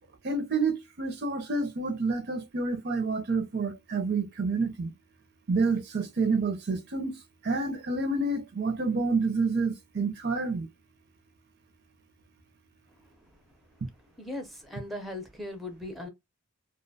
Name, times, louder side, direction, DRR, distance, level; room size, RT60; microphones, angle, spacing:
voice 1, 0.2-4.9 5.5-7.2 7.4-10.7, right 3 dB, 50° right, 0.5 m, -28 dB
voice 2, 14.2-16.1, left 1 dB, ahead, 0.5 m, -38 dB
2.4 x 2.1 x 2.6 m
head